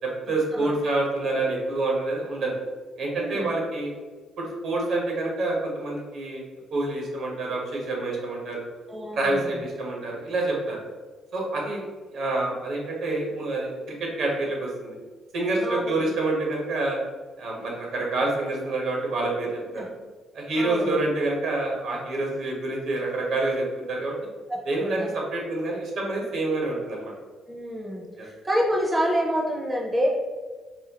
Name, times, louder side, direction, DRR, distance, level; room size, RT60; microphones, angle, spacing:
voice 1, 0.0-2.5 3.0-3.9 4.4-6.4 6.7-8.6 9.1-10.8 11.3-11.8 12.1-15.0 15.3-17.0 17.4-19.9 20.3-24.2 24.6-27.1 28.2-28.3, right 2 dB, 75° right, -1 dB, 1.1 m, -27 dB
voice 2, 3.2-3.5 8.9-9.6 15.6-16.0 19.8-19.9 20.6-21.0 24.5-25.1 27.5-30.1, equal, 20° right, -2 dB, 0.6 m, -27 dB
4.1 x 2.3 x 2.8 m, 1.4 s
cardioid pair, 90°, 0 cm